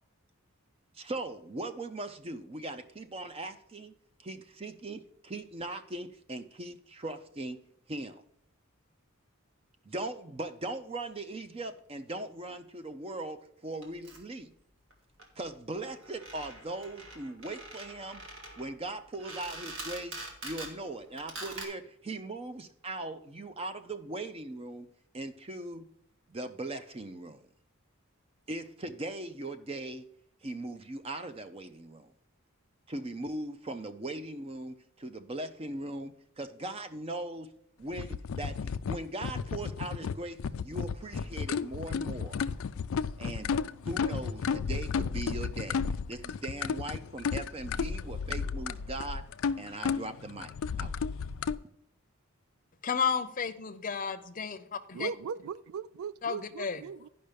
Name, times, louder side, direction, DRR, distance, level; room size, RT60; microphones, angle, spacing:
voice 1, 0.9-3.9 4.2-7.6 7.9-8.2 9.9-14.5 15.4-18.2 18.6-24.9 25.1-25.9 26.3-27.4 28.5-30.1 30.4-32.1 32.9-37.5 37.8-42.4 43.2-43.5 43.9-45.8 46.1-49.2 49.6-50.9, right 2 dB, 30° right, 0.5 m, -39 dB
sound 1, 13.8-14.2 14.9-15.0 15.2-15.3 15.5-15.6 15.8-20.8 21.2-21.6, right 2 dB, 65° right, 2.1 m, -44 dB
sound 2, 37.9-51.6, left 6 dB, 80° left, 0.4 m, -33 dB
voice 2, 52.8-54.6 54.9-55.1 56.2-56.8, left 6 dB, 40° left, 0.7 m, -32 dB
voice 3, 54.9-57.1, right 6 dB, 80° right, 0.3 m, -38 dB
10.5 x 5.5 x 5.1 m
head